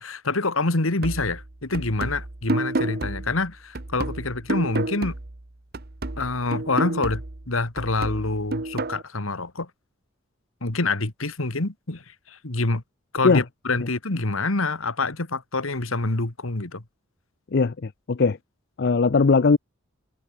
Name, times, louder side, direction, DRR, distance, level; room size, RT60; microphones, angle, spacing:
voice 1, 0.0-5.1 6.2-9.7 10.6-12.8 13.1-16.8, left 3 dB, 85° left, 2.1 m, -26 dB
sound 1, 1.0-5.5 5.7-9.0, right 2 dB, 50° right, 1.3 m, -30 dB
voice 2, 17.5-18.4 18.8-19.6, left 4 dB, 55° left, 0.5 m, -19 dB
head